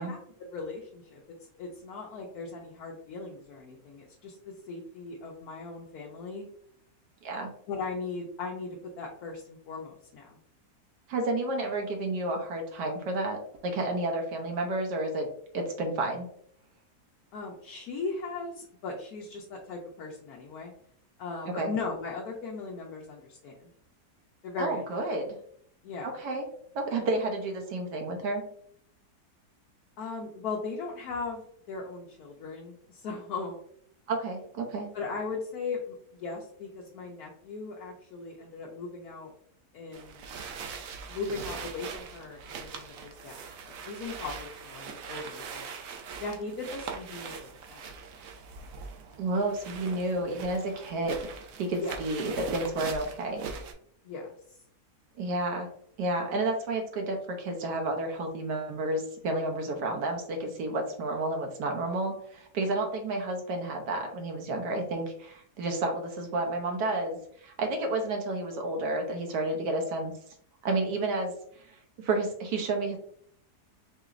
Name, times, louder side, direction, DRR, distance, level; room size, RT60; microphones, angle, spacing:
voice 1, 0.0-6.4 7.7-10.4 17.3-20.7 21.2-23.7 24.4-24.8 25.8-26.1 30.0-33.6 34.9-39.3 39.7-40.2 41.1-45.7 46.2-47.9 51.7-52.0 54.0-54.3, left 4 dB, 70° left, -1 dB, 1.1 m, -38 dB
voice 2, 11.1-15.3 15.5-16.3 21.5-21.7 24.6-25.3 26.0-26.5 26.7-28.4 34.1-34.9 49.2-51.2 51.6-53.5 55.2-55.7 56.0-70.1 70.6-73.0, right 2 dB, 85° right, 3 dB, 1.3 m, -31 dB
sound 1, 39.9-53.7, right 5 dB, 65° right, 0.9 m, -42 dB
4.9 x 2.9 x 2.4 m, 0.65 s
omnidirectional pair, 1.7 m